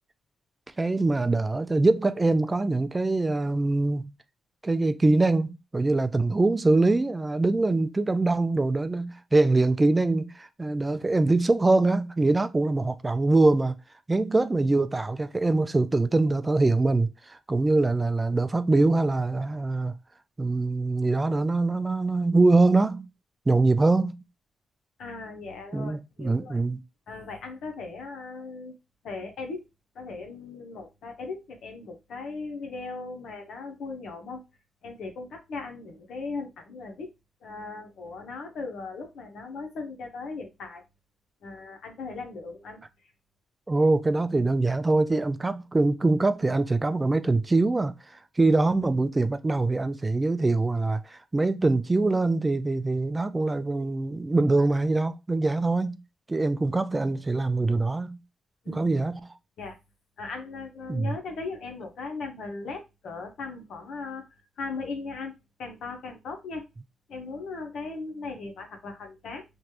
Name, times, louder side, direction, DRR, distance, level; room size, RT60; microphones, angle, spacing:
voice 1, 0.8-4.1 4.6-13.8 14.1-19.9 20.4-23.1 23.5-24.2 25.7-26.8 43.7-47.9 48.4-56.0 56.3-58.2 58.7-59.2 60.9-61.2, right 2 dB, 20° right, 0.3 m, -23 dB
voice 2, 25.0-26.6 27.1-28.7 29.0-29.6 29.9-34.4 34.8-37.1 37.4-40.8 41.4-42.8 58.6-58.9 59.6-59.8 60.2-64.2 64.6-65.3 65.6-66.7 67.1-69.4, left 3 dB, 75° left, 0.7 m, -38 dB
3.0 x 2.2 x 2.9 m
cardioid pair, 95°, 0 cm